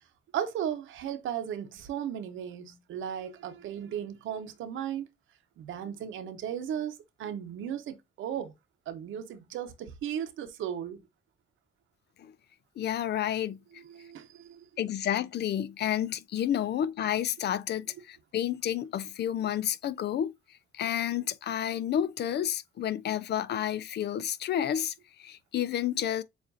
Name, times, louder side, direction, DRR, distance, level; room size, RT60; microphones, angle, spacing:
voice 1, 0.3-5.0 5.6-6.9 7.2-8.5 8.9-11.0 13.8-14.6, right 9 dB, 80° right, 0.9 m, -36 dB
voice 2, 12.8-13.6 14.8-20.3 20.7-24.9 25.2-26.2, left 10 dB, 60° left, 0.5 m, -30 dB
7.1 x 2.5 x 2.6 m
cardioid pair, 90°, 20 cm